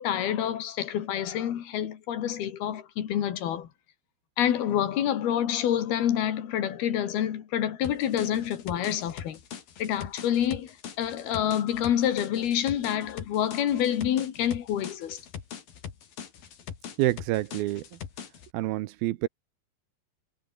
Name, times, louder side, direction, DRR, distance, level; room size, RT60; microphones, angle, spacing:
voice 1, 0.0-3.7 4.4-9.4 9.8-15.2, left 10 dB, 90° left, 4.1 m, -27 dB
sound 1, 7.8-18.5, left 8 dB, 70° left, 4.8 m, -42 dB
voice 2, 17.0-18.0 18.5-19.3, right 17 dB, 80° right, 2.7 m, -28 dB
omnidirectional pair, 4.3 m